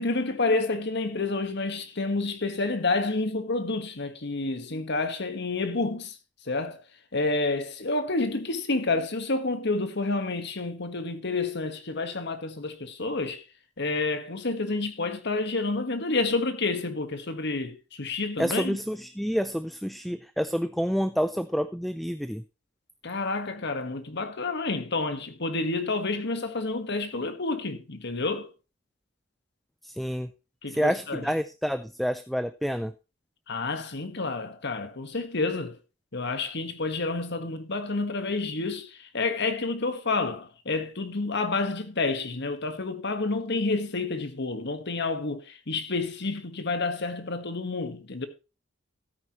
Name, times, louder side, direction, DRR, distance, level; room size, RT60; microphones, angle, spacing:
voice 1, 0.0-6.2 6.5-6.8 7.1-13.4 13.8-18.8 23.0-28.5 30.6-31.2 33.5-35.8 36.1-48.3, left 3 dB, 60° left, 1.5 m, -29 dB
voice 2, 18.4-22.4 29.8-30.3 30.7-32.9, equal, ahead, 0.4 m, -28 dB
13.5 x 9.2 x 3.0 m
head